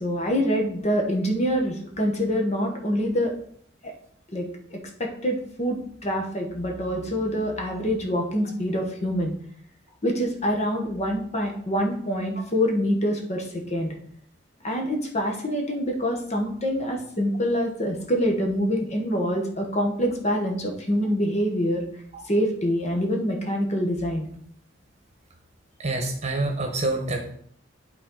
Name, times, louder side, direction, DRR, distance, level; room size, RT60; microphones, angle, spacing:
voice 1, 0.0-3.3 3.8-3.9 4.3-4.4 4.7-9.3 10.0-13.9 14.6-21.8 22.3-24.3, equal, 35° left, 2 dB, 1.3 m, -25 dB
voice 2, 25.8-27.3, right 2 dB, 35° right, 3 dB, 1.2 m, -27 dB
11.0 x 4.1 x 3.9 m, 0.64 s
head